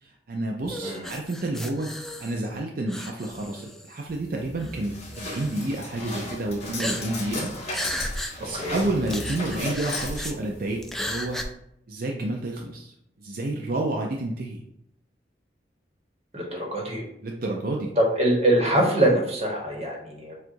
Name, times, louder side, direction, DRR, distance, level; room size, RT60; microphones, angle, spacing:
voice 1, 0.0-1.9 2.2-7.5 8.4-11.4 11.9-12.9 13.2-14.6 17.2-17.9, right 2 dB, 55° right, 0 dB, 0.5 m, -29 dB
sound 1, 0.7-2.6 2.9-4.0 4.6-4.7 5.1-5.7 6.8-7.3 7.7-8.3 8.7-8.8 9.1-10.4 10.8-11.4, equal, ahead, 0.3 m, -34 dB
sound 2, 4.1-11.4, left 2 dB, 35° left, 1.5 m, -36 dB
voice 2, 16.3-17.0 18.1-20.3, right 1 dB, 35° right, 0 dB, 1.2 m, -24 dB
7.4 x 2.5 x 2.6 m, 0.75 s
head